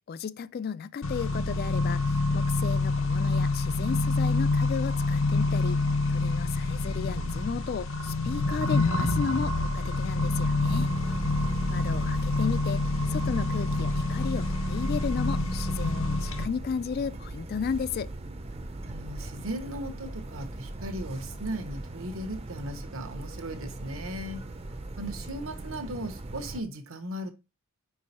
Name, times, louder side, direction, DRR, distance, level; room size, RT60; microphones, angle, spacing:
voice 1, 0.1-5.8 6.1-10.9 11.7-12.8 13.1-18.1, left 6 dB, 45° left, 0.3 m, -34 dB
Accelerating revving vroom, 1.0-16.4, left 2 dB, 65° left, 0.9 m, -27 dB
voice 2, 10.5-11.3 18.9-24.4 25.0-27.3, right 1 dB, 70° right, 1.0 m, -37 dB
sound 1, 10.6-26.6, right 2 dB, 30° right, 0.6 m, -40 dB
5.2 x 4.6 x 4.1 m
head